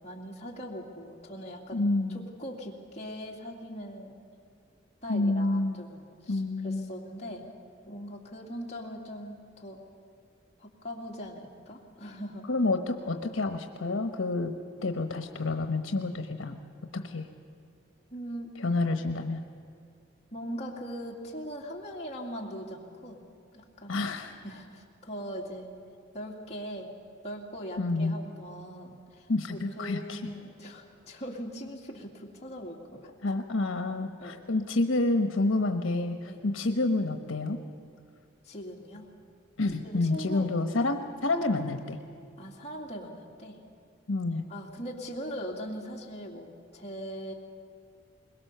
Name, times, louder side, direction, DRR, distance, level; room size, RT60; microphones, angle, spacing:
voice 1, 0.0-4.1 5.0-7.5 7.8-9.8 10.6-12.4 14.8-14.9 18.1-18.5 20.3-23.2 23.5-24.0 24.4-25.7 26.1-26.9 27.2-33.1 34.2-34.4 36.3-36.4 38.4-39.1 39.8-40.5 42.4-43.6 44.5-47.3, equal, 35° left, -2 dB, 2.5 m, -40 dB
voice 2, 1.7-2.3 5.1-5.8 6.3-6.9 12.5-14.5 14.8-16.6 16.9-17.3 18.6-19.4 23.9-24.3 27.8-28.1 29.3-30.2 33.2-37.6 39.6-42.0 44.1-44.5, left 2 dB, 80° left, 6 dB, 1.1 m, -28 dB
22.0 x 21.0 x 6.8 m, 2.4 s
head